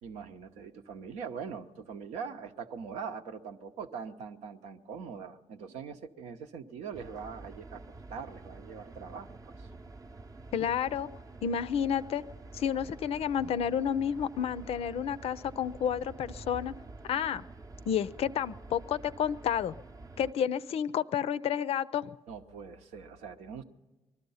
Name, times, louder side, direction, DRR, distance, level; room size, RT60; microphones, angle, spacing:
voice 1, 0.0-9.7 22.3-23.6, right 6 dB, 75° right, 7 dB, 0.8 m, -42 dB
sound 1, 6.9-20.3, right 2 dB, 30° right, 0.7 m, -48 dB
voice 2, 10.5-11.1 11.4-12.2 12.5-16.7 17.0-17.4 17.9-19.7 20.2-22.1, left 8 dB, 60° left, 15 dB, 0.5 m, -30 dB
20.5 x 12.5 x 5.5 m, 1.2 s
supercardioid pair, 70°, 12 cm